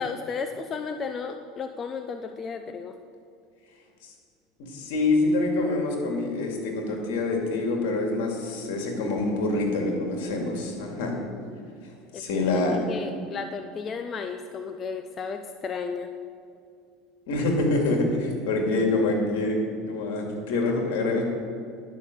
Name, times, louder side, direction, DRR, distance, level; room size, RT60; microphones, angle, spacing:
voice 1, 0.0-2.9 12.1-12.2 12.6-16.1, left 5 dB, 35° left, 7 dB, 0.6 m, -34 dB
voice 2, 4.6-11.2 12.1-12.8 17.3-19.6 19.8-21.2, left 2 dB, 75° left, 1 dB, 2.3 m, -26 dB
11.0 x 5.7 x 7.6 m, 2.3 s
supercardioid pair, 110°, 0 cm